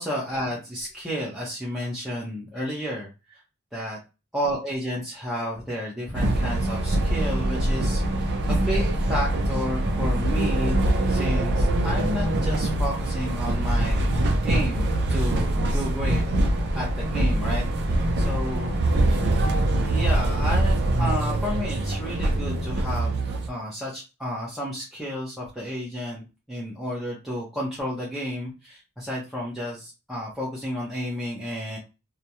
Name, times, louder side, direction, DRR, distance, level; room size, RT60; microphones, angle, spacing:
voice 1, 0.0-3.4 3.7-4.0 4.3-18.8 19.8-23.2 23.5-31.8, equal, ahead, -7 dB, 0.6 m, -32 dB
sound 1, 6.1-23.5, right 1 dB, 50° right, 0.4 m, -23 dB
2.4 x 2.1 x 2.8 m, 0.28 s
head